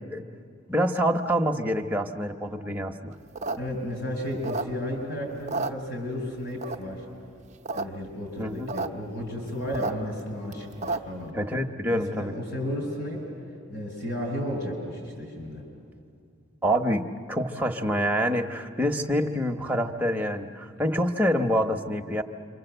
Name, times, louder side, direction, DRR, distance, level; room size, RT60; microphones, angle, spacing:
voice 1, 0.7-3.1 8.4-8.7 11.3-12.3 16.6-22.2, equal, 10° right, 1 dB, 1.0 m, -26 dB
sound 1, 3.2-5.0 5.4-6.3 6.6-7.1 7.5-8.1 8.4-8.9 9.2-11.2, right 3 dB, 35° right, 0.7 m, -32 dB
voice 2, 3.6-7.0 7.7-11.3 11.9-13.2 13.7-15.6, left 1 dB, 55° left, 2 dB, 6.9 m, -33 dB
27.5 x 25.0 x 8.0 m, 2.3 s
head